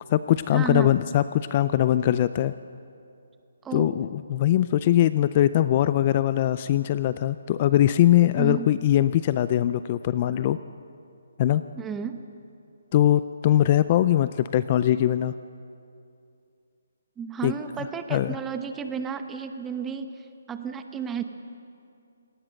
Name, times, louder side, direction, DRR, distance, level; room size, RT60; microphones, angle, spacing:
voice 1, 0.0-2.5 3.7-10.6 11.4-11.6 12.9-15.3 17.4-17.5 18.1-18.3, left 12 dB, 30° left, 14 dB, 0.4 m, -21 dB
voice 2, 0.5-0.9 3.6-4.0 8.4-8.7 11.8-12.2 17.2-20.1 20.5-21.2, right 7 dB, 10° right, 8 dB, 1.0 m, -32 dB
28.0 x 18.5 x 6.5 m, 2.6 s
hypercardioid pair, 165°, 0 cm